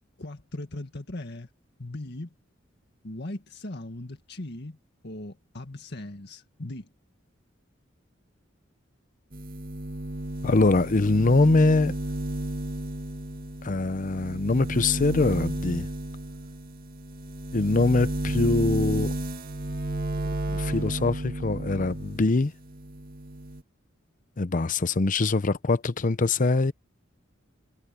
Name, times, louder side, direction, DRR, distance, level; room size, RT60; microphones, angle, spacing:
voice 1, 0.2-1.5 1.8-2.3 3.0-4.8 5.0-6.9, left 1 dB, 60° left, 1.9 m, -38 dB
sound 1, 9.3-22.3 22.6-23.6, right 1 dB, 50° right, 2.0 m, -33 dB
voice 2, 10.4-11.9 13.6-15.9 17.5-19.1 20.5-22.5 24.4-26.7, left 3 dB, 40° left, 0.7 m, -23 dB
head